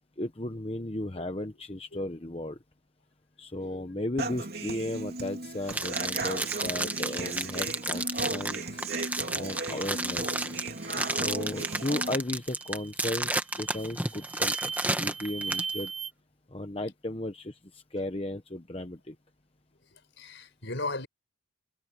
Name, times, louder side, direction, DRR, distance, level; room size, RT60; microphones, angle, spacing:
voice 1, 0.2-2.6 3.4-8.8 9.3-10.4 11.2-14.6 15.0-15.9 16.5-19.2, left 1 dB, 25° left, 1.0 m, -35 dB
voice 2, 3.5-3.8 8.2-8.3 20.2-21.1, left 2 dB, 60° left, 4.9 m, -36 dB
Human voice / Acoustic guitar, 4.2-12.2, right 3 dB, 50° right, 3.5 m, -36 dB
sound 1, 5.7-15.7, right 2 dB, 10° right, 1.4 m, -32 dB
sound 2, 11.7-12.0 12.4-13.0 13.5-16.1, right 5 dB, 30° right, 1.1 m, -38 dB
head